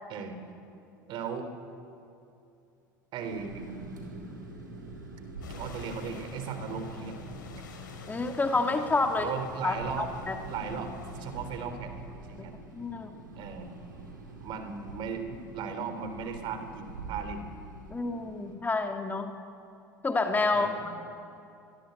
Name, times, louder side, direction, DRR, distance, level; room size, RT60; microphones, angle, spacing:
voice 1, 1.1-1.5 3.1-3.7 5.4-7.2 8.5-8.6 9.2-10.1 10.5-12.5 13.4-13.7 14.4-17.4 20.5-20.9, right 6 dB, 45° right, 8 dB, 3.7 m, -37 dB
sound 1, 3.2-18.6, right 2 dB, 75° right, 4.6 m, -45 dB
sound 2, 5.4-11.7, left 5 dB, 70° left, 3.9 m, -46 dB
voice 2, 8.1-9.3 9.6-10.4 12.7-13.1 17.9-19.3 20.0-20.7, left 3 dB, 15° left, 5 dB, 2.3 m, -28 dB
25.5 x 21.5 x 8.3 m, 2.7 s
figure-of-eight pair, 70°, 11 cm